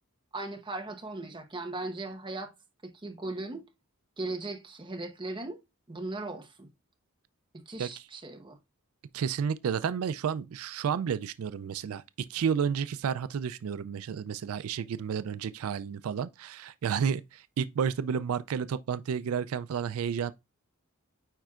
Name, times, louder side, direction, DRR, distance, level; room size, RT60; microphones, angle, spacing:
voice 1, 0.3-2.5 2.8-3.6 4.2-5.6 5.9-6.7 7.5-8.6, right 2 dB, 20° right, 1.0 m, -38 dB
voice 2, 9.1-12.0 12.3-20.3, right 7 dB, 80° right, 0.4 m, -31 dB
9.1 x 4.5 x 2.4 m
head